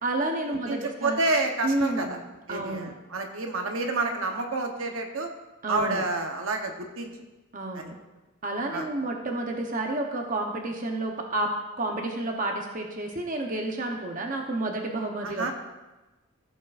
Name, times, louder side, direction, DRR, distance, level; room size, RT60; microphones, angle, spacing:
voice 1, 0.0-1.2 1.6-2.2 2.5-2.9 5.6-6.0 7.5-8.0 8.4-11.5 11.8-15.5, right 2 dB, 35° right, 1 dB, 0.8 m, -30 dB
voice 2, 0.7-2.2 2.5-5.3 5.7-7.1 7.7-7.8 8.7-8.9 15.2-15.5, right 2 dB, 65° right, 3 dB, 1.0 m, -29 dB
15.5 x 7.2 x 2.5 m, 1.1 s
head